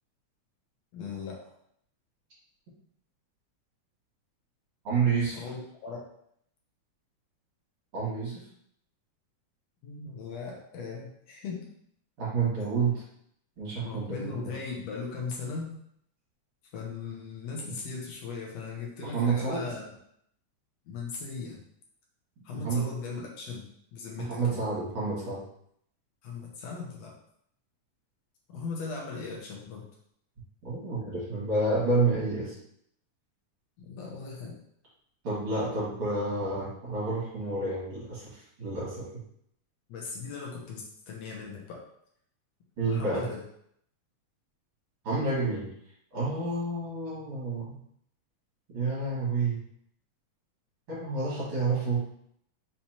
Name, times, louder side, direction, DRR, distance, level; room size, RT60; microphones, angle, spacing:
voice 1, 0.9-1.4 5.3-6.1 9.8-11.7 13.8-15.8 16.7-19.8 20.9-21.6 22.4-23.6 23.9-24.7 26.2-27.1 28.5-29.9 33.8-34.5 39.9-41.8 42.8-43.4, left 4 dB, 65° left, -2 dB, 1.9 m, -38 dB
voice 2, 4.8-5.4 7.9-8.4 12.2-13.0 13.6-14.5 17.6-17.7 19.0-19.7 22.6-22.9 24.3-25.4 30.6-32.5 35.2-39.1 42.8-43.2 45.0-45.7 46.1-47.8 48.7-49.6 50.9-52.1, right 3 dB, 50° right, -8 dB, 2.7 m, -29 dB
5.6 x 3.3 x 2.9 m, 0.68 s
omnidirectional pair, 3.6 m